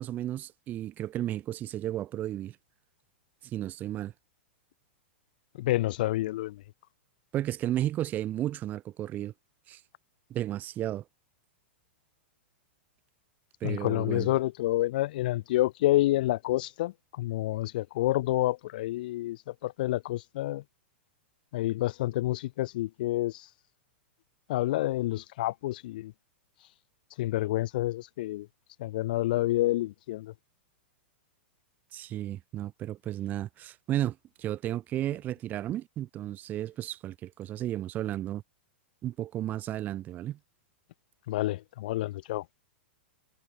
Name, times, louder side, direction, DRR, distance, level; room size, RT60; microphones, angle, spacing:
voice 1, 0.0-2.6 3.4-4.1 7.3-9.3 9.7-9.8 10.3-11.0 13.6-14.3 31.9-38.4 39.0-40.4, right 13 dB, 30° right, 1.8 m, -33 dB
voice 2, 5.6-6.6 13.6-20.6 21.5-23.5 24.5-26.1 27.2-28.5 28.8-30.3 41.3-42.4, left 16 dB, 50° left, 0.5 m, -28 dB
figure-of-eight pair, 100°, 6 cm